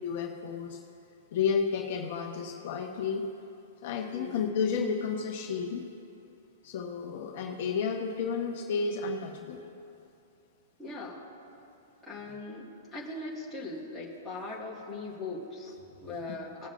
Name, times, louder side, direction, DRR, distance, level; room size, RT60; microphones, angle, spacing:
voice 1, 0.0-0.8 1.3-3.3 3.8-5.9 6.6-9.7, left 6 dB, 45° left, 1 dB, 1.0 m, -31 dB
voice 2, 4.1-4.5 10.8-11.3 12.0-16.7, left 2 dB, ahead, -9 dB, 1.8 m, -40 dB
19.0 x 7.2 x 2.5 m, 2.7 s
hypercardioid pair, 175°, 0 cm